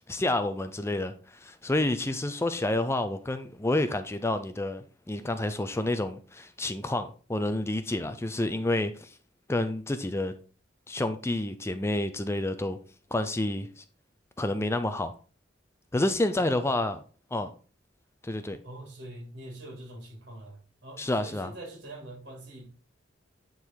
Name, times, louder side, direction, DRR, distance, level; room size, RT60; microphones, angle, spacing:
voice 1, 0.0-9.1 9.5-10.3 10.9-12.8 13.1-13.8 14.4-15.1 15.9-17.0 17.3-17.5 18.2-18.6 21.0-21.5, left 1 dB, 15° left, 0.5 m, -29 dB
voice 2, 16.3-16.7 18.6-22.7, right 1 dB, 65° right, 3.5 m, -44 dB
9.8 x 3.9 x 4.6 m
head